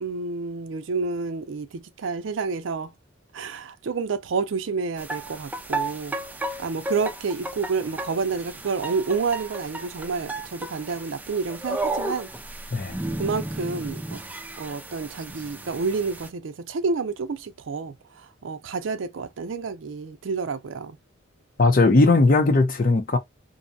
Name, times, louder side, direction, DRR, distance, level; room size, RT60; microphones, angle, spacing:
voice 1, 0.0-2.9 3.3-6.2 6.6-12.3 13.2-14.2 14.6-21.0, right 4 dB, 75° right, 0.4 m, -29 dB
sound 1, 5.0-16.3, right 2 dB, 10° right, 0.4 m, -34 dB
voice 2, 21.6-23.2, left 3 dB, 45° left, 0.6 m, -18 dB
2.6 x 2.2 x 2.5 m
head